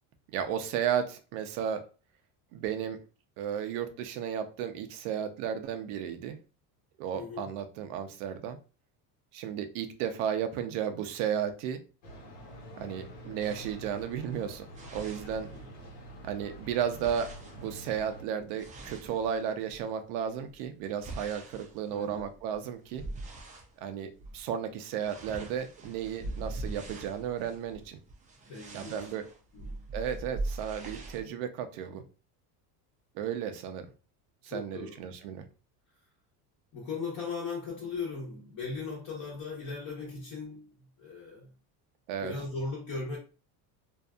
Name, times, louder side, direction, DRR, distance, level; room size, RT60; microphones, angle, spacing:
voice 1, 0.3-1.8 2.5-3.0 3.4-6.4 7.0-8.6 9.3-11.8 12.8-15.5 16.2-23.0 23.8-28.0 28.7-29.2 29.9-32.0 33.1-33.9 34.4-35.4 42.1-42.3, right 8 dB, 80° right, 0.6 m, -34 dB
voice 2, 7.1-7.5 15.5-15.6 21.9-22.2 28.5-29.1 29.5-29.9 34.4-35.0 36.7-40.7 41.0-41.5 42.2-43.2, left 4 dB, 45° left, 1.0 m, -38 dB
sound 1, 12.0-18.2, right 1 dB, 85° left, 1.2 m, -47 dB
sound 2, 13.4-15.9 16.2-19.8 20.4-23.7 24.1-24.4 24.7-31.2, right 2 dB, 20° right, 0.4 m, -42 dB
2.6 x 2.4 x 2.3 m
cardioid pair, 125°, 42 cm